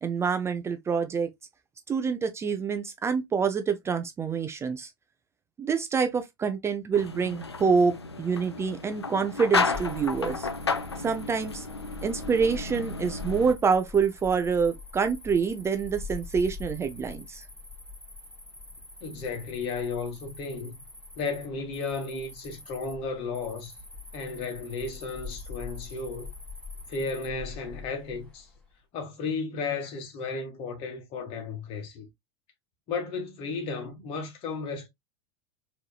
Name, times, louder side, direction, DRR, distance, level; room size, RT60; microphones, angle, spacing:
voice 1, 0.0-1.3 1.9-4.9 5.6-10.5 11.0-11.7 12.0-17.4, right 5 dB, 20° right, 0.5 m, -26 dB
sound 1, 6.9-13.5, left 4 dB, 90° left, 0.5 m, -32 dB
Cricket, 9.7-28.6, left 4 dB, 5° left, 2.0 m, -44 dB
voice 2, 19.0-20.8 21.2-23.7 24.1-26.3 26.9-28.5 28.9-32.1 32.9-34.9, left 4 dB, 45° left, 1.7 m, -34 dB
4.6 x 3.1 x 2.3 m
figure-of-eight pair, 85°, 13 cm